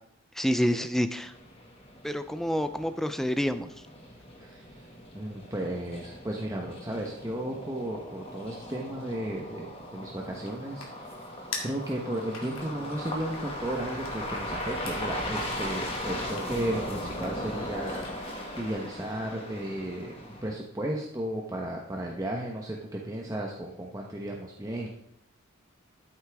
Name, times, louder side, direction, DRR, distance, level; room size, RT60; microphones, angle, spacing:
voice 1, 0.4-1.3 2.0-3.7, equal, ahead, 10 dB, 0.3 m, -28 dB
sound 1, 1.2-20.5, left 1 dB, 25° left, 1.8 m, -38 dB
voice 2, 4.4-4.9 5.1-20.2 20.4-24.9, right 1 dB, 15° right, 0 dB, 0.9 m, -34 dB
sound 2, 9.8-18.5, left 4 dB, 75° left, 2.4 m, -46 dB
13.5 x 8.1 x 3.5 m, 0.74 s
head